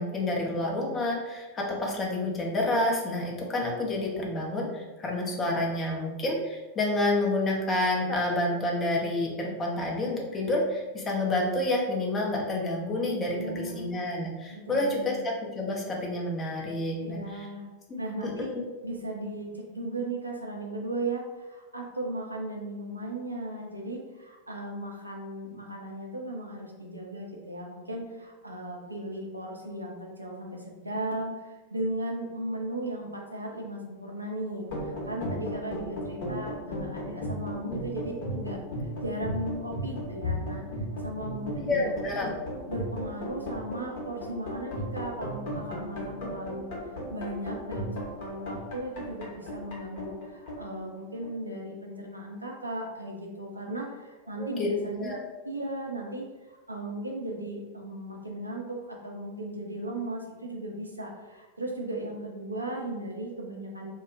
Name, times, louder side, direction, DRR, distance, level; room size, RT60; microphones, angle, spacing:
voice 1, 0.0-17.2 17.9-18.6 41.7-42.3 54.4-54.7 55.0-55.2, left 1 dB, 20° left, -1 dB, 0.6 m, -29 dB
voice 2, 13.4-13.9 14.5-15.2 17.0-17.6 18.0-18.5 18.8-38.6 39.0-40.6 41.0-41.9 42.7-46.7 47.1-63.9, right 1 dB, 85° right, 0 dB, 0.4 m, -36 dB
sound 1, 34.6-51.5, equal, 50° left, 0.9 m, -36 dB
2.2 x 2.1 x 3.7 m, 1.2 s
figure-of-eight pair, 90°, 0 cm